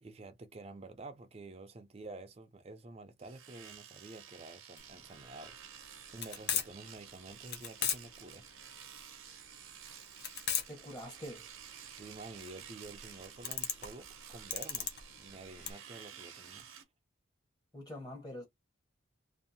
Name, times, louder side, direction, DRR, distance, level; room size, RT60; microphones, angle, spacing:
voice 1, 0.0-5.6 6.1-8.5 11.9-16.7, right 2 dB, 30° right, 0.4 m, -50 dB
Domestic sounds home sounds, 3.2-16.8, right 9 dB, 90° right, 0.6 m, -52 dB
sound 1, 4.8-15.7, left 8 dB, 50° left, 0.6 m, -38 dB
voice 2, 10.7-11.5 17.7-18.4, equal, 20° left, 0.9 m, -45 dB
2.6 x 2.4 x 2.7 m
head